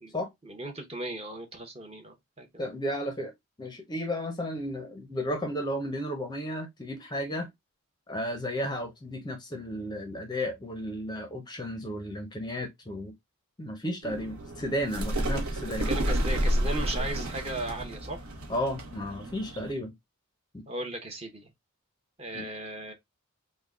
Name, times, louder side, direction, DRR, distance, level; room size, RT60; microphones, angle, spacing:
voice 1, 0.4-2.5 15.9-18.2 20.7-21.5 22.2-22.9, right 1 dB, 25° right, 0.8 m, -36 dB
voice 2, 2.6-3.3 3.6-7.5 8.1-13.1 13.6-15.9 18.5-19.9 20.5-20.6 22.3-22.5, equal, 20° left, 0.5 m, -33 dB
sound 1, 14.0-19.7, right 1 dB, 75° right, 0.9 m, -31 dB
3.6 x 2.1 x 3.5 m
head